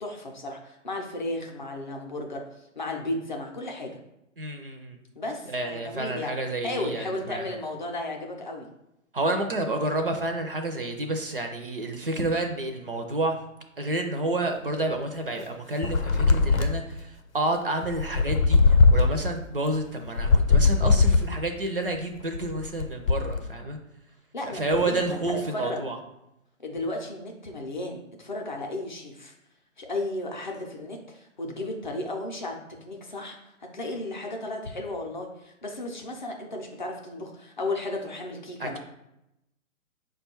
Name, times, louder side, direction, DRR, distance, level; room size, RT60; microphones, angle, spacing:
voice 1, 0.0-3.9 5.1-6.3 6.6-8.7 14.1-14.3 24.3-25.8 26.6-29.3 29.8-32.6 32.8-38.8, left 2 dB, 35° left, 1 dB, 0.5 m, -34 dB
voice 2, 4.4-5.0 5.5-7.5 9.1-13.4 13.8-23.8 24.4-26.0 38.6-38.8, right 2 dB, 45° right, 5 dB, 0.4 m, -29 dB
sound 1, 15.8-17.0 17.8-19.3 20.1-21.5 22.2-23.4, left 4 dB, 85° left, 0.6 m, -20 dB
4.9 x 2.3 x 4.3 m, 0.85 s
hypercardioid pair, 160°, 40 cm